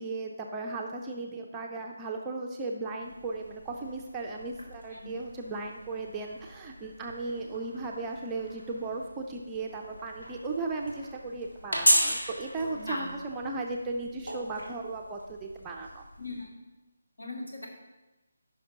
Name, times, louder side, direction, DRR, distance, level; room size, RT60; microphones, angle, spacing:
voice 1, 0.0-16.0, right 3 dB, 10° right, 0 dB, 0.5 m, -36 dB
sound 1, 3.0-16.4, equal, 75° left, 1.9 m, -35 dB
voice 2, 12.7-13.1 16.2-16.5 17.2-17.7, left 2 dB, 60° left, -1 dB, 2.1 m, -38 dB
15.0 x 5.8 x 2.9 m, 1.1 s
figure-of-eight pair, 150°, 0 cm